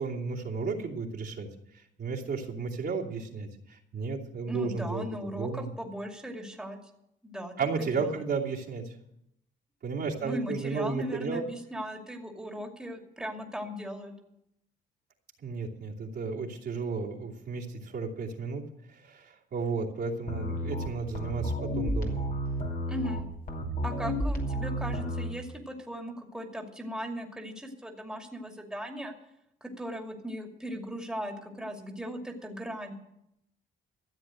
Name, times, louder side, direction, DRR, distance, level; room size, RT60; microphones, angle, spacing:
voice 1, 0.0-1.5 2.0-5.7 7.6-8.9 9.8-11.4 15.4-18.6 18.9-22.3, right 4 dB, 55° right, -3 dB, 2.8 m, -33 dB
voice 2, 4.5-6.8 7.2-8.2 10.2-14.1 22.9-23.3 23.8-29.1 29.6-32.9, equal, 5° right, 2 dB, 2.5 m, -38 dB
sound 1, 20.3-25.3, equal, 45° left, 2.7 m, -31 dB
14.0 x 7.9 x 8.9 m, 0.80 s
cardioid pair, 90°, 20 cm